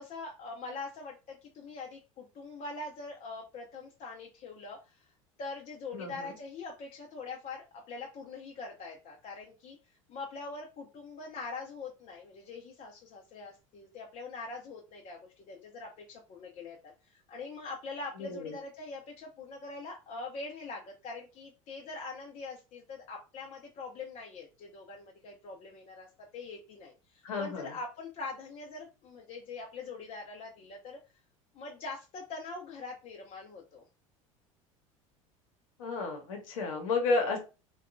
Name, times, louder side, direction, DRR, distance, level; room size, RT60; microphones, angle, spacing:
voice 1, 0.0-5.1 5.4-26.1 26.3-31.0 31.5-33.8, left 3 dB, 45° left, -1 dB, 0.6 m, -43 dB
voice 2, 5.9-6.3 18.2-18.5 27.2-27.7 35.8-37.4, left 3 dB, 80° left, 3 dB, 0.9 m, -32 dB
2.7 x 2.3 x 2.5 m, 0.30 s
hypercardioid pair, 80°, 17 cm